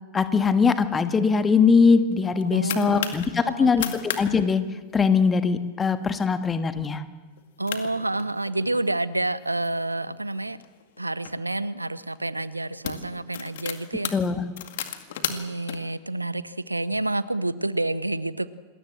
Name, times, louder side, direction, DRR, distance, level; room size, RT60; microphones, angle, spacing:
voice 1, 0.1-4.6 4.9-7.0 14.1-14.4, left 5 dB, 15° left, 9 dB, 1.6 m, -21 dB
sound 1, 2.1-3.3 3.7-4.2 4.5-4.6 4.9-5.3 5.8-6.1 6.5-6.6 7.4-7.5 7.7-8.9 9.5-11.3 12.1-12.3 12.6-15.8, left 10 dB, 55° left, 2.1 m, -34 dB
voice 2, 2.5-3.9 7.6-10.6 11.0-14.1 15.3-18.5, right 2 dB, 85° right, 18 dB, 0.8 m, -29 dB
27.5 x 21.0 x 7.6 m, 1.3 s
figure-of-eight pair, 90°, 0 cm